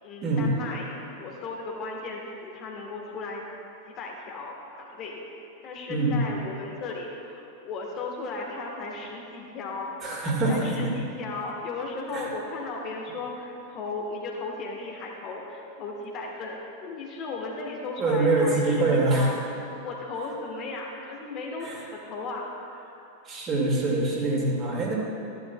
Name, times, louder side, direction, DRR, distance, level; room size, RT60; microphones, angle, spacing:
voice 1, 0.0-3.4 3.9-5.2 5.6-9.9 10.2-19.4 19.8-22.5, left 3 dB, 35° left, -1 dB, 1.3 m, -36 dB
voice 2, 5.9-6.2 10.0-10.9 12.1-12.3 18.0-19.4 21.6-21.8 23.3-24.9, right 2 dB, 30° right, -3 dB, 2.1 m, -24 dB
13.0 x 11.0 x 2.3 m, 3.0 s
figure-of-eight pair, 90°, 0 cm